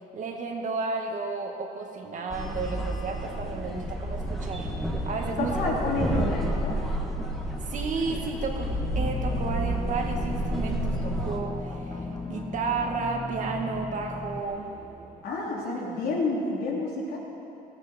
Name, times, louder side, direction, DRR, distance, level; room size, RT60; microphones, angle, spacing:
voice 1, 0.1-4.7 5.0-5.6 7.6-14.7, right 4 dB, 50° right, 2 dB, 2.0 m, -32 dB
sound 1, 2.3-11.4, equal, ahead, 1.8 m, -30 dB
voice 2, 5.4-6.8 15.2-17.2, left 2 dB, 70° left, -3 dB, 3.5 m, -29 dB
sound 2, 8.9-14.4, left 3 dB, 25° left, 0.9 m, -36 dB
Race car auto racing / Accelerating revving vroom, 11.2-15.9, right 3 dB, 65° right, 3.7 m, -48 dB
17.5 x 14.5 x 4.5 m, 2.7 s
cardioid pair, 110°, 17 cm